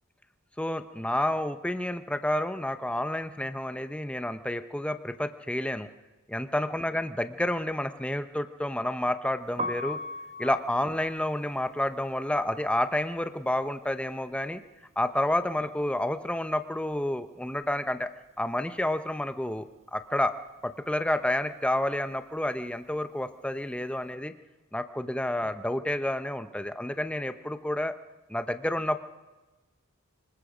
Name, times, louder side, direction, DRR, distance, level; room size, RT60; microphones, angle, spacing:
voice 1, 0.6-5.9 6.3-10.0 10.4-14.6 15.0-18.1 18.4-20.3 20.6-24.3 24.7-28.0 28.3-29.0, left 1 dB, 5° left, 10 dB, 0.8 m, -29 dB
Piano, 9.5-15.4 15.7-17.3 17.5-24.0, left 1 dB, 30° right, 1.3 m, -42 dB
25.5 x 20.0 x 5.0 m, 1.1 s
head